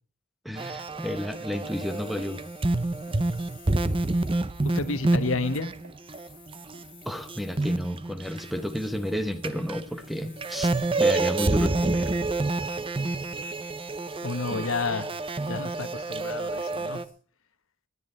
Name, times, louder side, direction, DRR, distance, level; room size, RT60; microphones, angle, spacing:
voice 1, 0.4-2.4 7.0-12.2 14.5-14.6, left 1 dB, ahead, 10 dB, 0.9 m, -32 dB
sound 1, 0.6-6.8 7.2-9.2 9.4-17.0, right 2 dB, 25° right, 0.6 m, -28 dB
sound 2, 0.9-17.1, left 7 dB, 25° left, 4.7 m, -56 dB
Walk footsteps, 2.2-2.5 3.1-3.2 4.0-4.2 4.9-5.1 5.8-6.0 6.7-6.9 7.6-7.8 8.6-8.8 9.5-9.6, right 2 dB, 70° right, 2.4 m, -51 dB
voice 2, 4.6-5.7 14.2-15.1 15.5-17.0, left 3 dB, 65° left, 12 dB, 1.1 m, -30 dB
19.5 x 9.8 x 4.3 m, 0.40 s
head